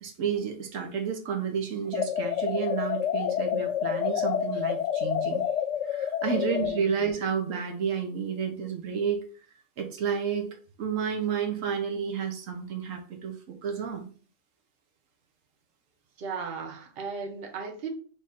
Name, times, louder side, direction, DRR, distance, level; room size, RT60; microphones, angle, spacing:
voice 1, 0.0-9.2 9.8-14.1, right 7 dB, 85° right, 4 dB, 1.2 m, -31 dB
sound 1, 1.9-6.8, left 9 dB, 70° left, 0.8 m, -28 dB
voice 2, 6.3-6.9 16.2-17.9, right 5 dB, 50° right, 3 dB, 1.0 m, -36 dB
3.7 x 3.1 x 4.1 m, 0.41 s
omnidirectional pair, 1.3 m